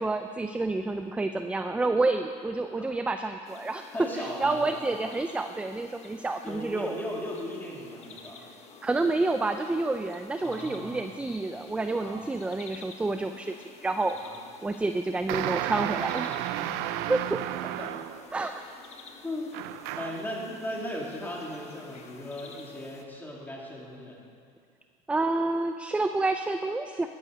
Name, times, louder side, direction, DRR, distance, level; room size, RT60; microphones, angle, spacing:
voice 1, 0.0-7.0 8.8-14.2 14.6-16.3 17.1-17.4 18.3-18.6 25.1-27.1, right 2 dB, 5° right, 8 dB, 0.4 m, -29 dB
sound 1, 3.4-23.0, left 5 dB, 40° left, 1.2 m, -51 dB
voice 2, 3.9-4.8 6.4-8.4 10.4-11.0 11.9-12.2 14.1-14.3 16.2-16.8 17.8-17.9 19.2-19.5 20.0-24.2, left 1 dB, 10° left, -3 dB, 2.9 m, -37 dB
sound 2, 15.3-18.3 19.5-20.3, right 13 dB, 70° right, 0.5 m, -32 dB
13.5 x 11.0 x 5.3 m, 2.2 s
cardioid pair, 125°, 17 cm